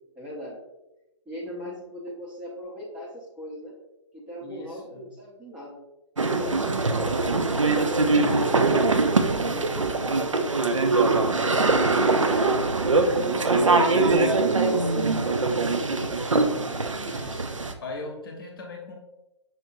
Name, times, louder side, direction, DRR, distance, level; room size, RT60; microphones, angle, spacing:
voice 1, 0.1-0.6 1.3-3.7 4.3-5.8 6.3-12.8 13.2-14.0 14.5-16.3, left 1 dB, 5° right, -6 dB, 0.7 m, -39 dB
voice 2, 4.4-5.1 6.5-7.3 17.1-19.0, left 2 dB, 45° left, 1 dB, 0.9 m, -40 dB
sound 1, 6.2-17.7, right 3 dB, 80° right, 0.5 m, -22 dB
5.7 x 2.6 x 2.6 m, 0.97 s
figure-of-eight pair, 125°, 16 cm